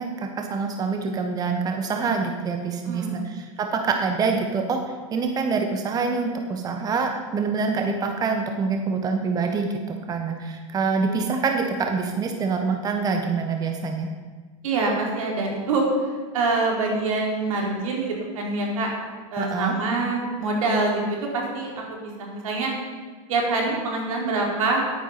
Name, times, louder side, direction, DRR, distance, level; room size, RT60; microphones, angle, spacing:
voice 1, 0.0-4.8 5.1-14.1 19.4-19.7, right 4 dB, 20° right, 4 dB, 1.1 m, -26 dB
voice 2, 2.9-3.2 14.6-18.9 19.3-21.8 22.2-22.7 23.3-24.8, right 3 dB, 80° right, -1 dB, 3.9 m, -25 dB
12.0 x 9.1 x 5.8 m, 1.4 s
supercardioid pair, 135°, 17 cm